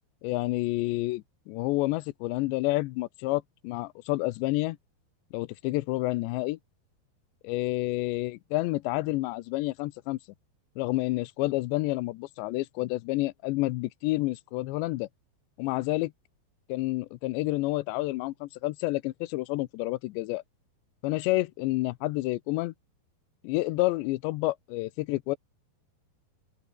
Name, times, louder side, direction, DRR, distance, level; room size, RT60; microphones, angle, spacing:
voice 1, 0.2-4.8 5.3-6.6 7.4-10.2 10.8-15.1 15.6-16.1 16.7-20.4 21.0-22.7 23.4-25.4, left 20 dB, 80° left, 2.9 m, -29 dB
open air
omnidirectional pair, 5.2 m